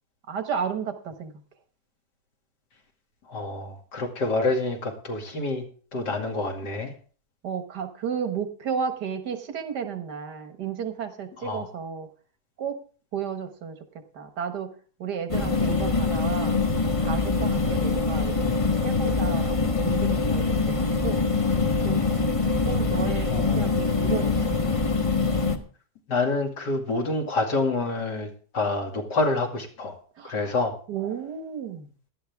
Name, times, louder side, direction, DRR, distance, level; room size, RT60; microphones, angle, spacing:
voice 1, 0.3-1.3 7.4-12.1 12.6-12.8 13.1-13.8 14.1-14.7 15.0-16.6 17.0-21.2 21.8-22.0 22.5-24.5 30.2-30.5 30.9-31.9, right 7 dB, 80° right, 8 dB, 1.9 m, -33 dB
voice 2, 3.3-5.7 5.9-6.9 11.4-11.6 23.3-23.6 26.1-30.0 30.2-30.7, left 2 dB, 85° left, 1 dB, 3.0 m, -27 dB
sound 1, 15.3-25.6, left 3 dB, 20° left, 1.2 m, -24 dB
16.5 x 11.5 x 3.5 m, 0.42 s
omnidirectional pair, 1.8 m